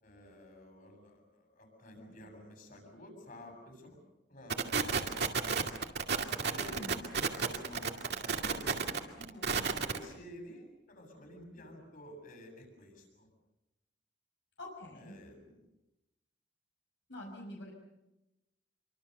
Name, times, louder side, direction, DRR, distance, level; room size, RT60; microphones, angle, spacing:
voice 1, 0.0-4.0 4.3-5.4 6.4-13.3 14.9-15.7, left 1 dB, 50° left, 3 dB, 7.7 m, -51 dB
sound 1, 4.5-10.0, right 5 dB, 60° right, 2.3 m, -32 dB
voice 2, 6.5-6.9 14.6-15.2 17.1-17.7, left 1 dB, 75° left, 0 dB, 5.7 m, -46 dB
27.0 x 24.5 x 6.7 m, 0.94 s
head